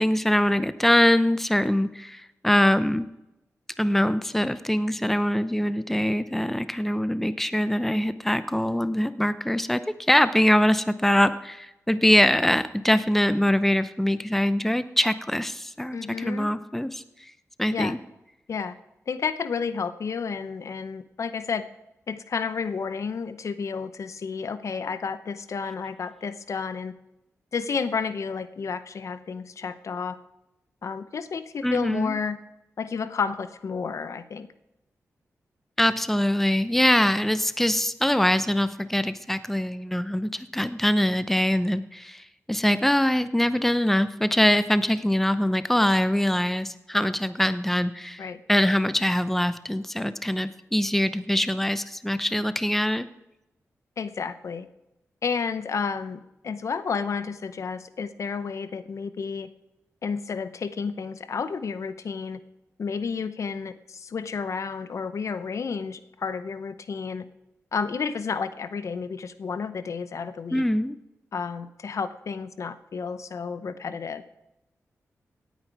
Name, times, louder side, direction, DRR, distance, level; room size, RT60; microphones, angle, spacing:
voice 1, 0.0-3.0 3.8-17.0 17.6-18.0 31.6-32.1 35.8-53.1 70.5-71.0, left 1 dB, 5° left, 13 dB, 0.7 m, -23 dB
voice 2, 15.9-16.5 17.7-17.9 18.5-18.7 19.1-21.6 22.1-26.9 27.5-30.2 30.8-32.4 32.8-34.5 48.2-48.4 54.0-54.7 55.2-59.5 60.0-62.4 62.8-67.2 67.7-70.6 71.3-74.2, left 5 dB, 65° left, 13 dB, 0.8 m, -31 dB
17.5 x 9.2 x 4.7 m, 0.90 s
cardioid pair, 70°, 6 cm